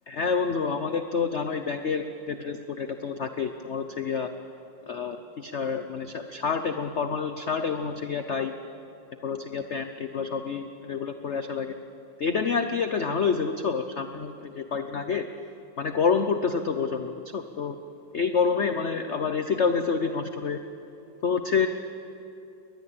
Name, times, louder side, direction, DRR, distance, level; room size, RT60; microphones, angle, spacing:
voice 1, 0.1-4.3 4.9-8.5 9.2-11.8 12.2-15.3 15.8-17.8 18.1-20.6 21.2-21.7, left 5 dB, 50° left, 8 dB, 0.9 m, -28 dB
22.0 x 20.0 x 8.8 m, 2.8 s
omnidirectional pair, 2.0 m